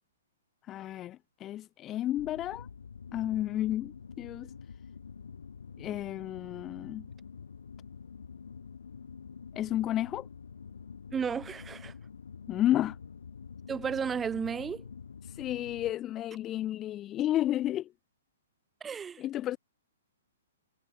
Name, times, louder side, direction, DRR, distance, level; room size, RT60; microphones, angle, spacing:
voice 1, 0.6-2.7 3.1-4.5 5.8-7.1 9.5-10.3 12.5-13.0 15.2-17.9 19.2-19.6, left 13 dB, 25° left, 0.6 m, -32 dB
sound 1, 2.2-15.9, left 6 dB, 65° left, 1.4 m, -47 dB
voice 2, 11.1-11.9 13.7-14.8 18.8-19.2, right 6 dB, 15° right, 1.5 m, -33 dB
figure-of-eight pair, 115°, 0 cm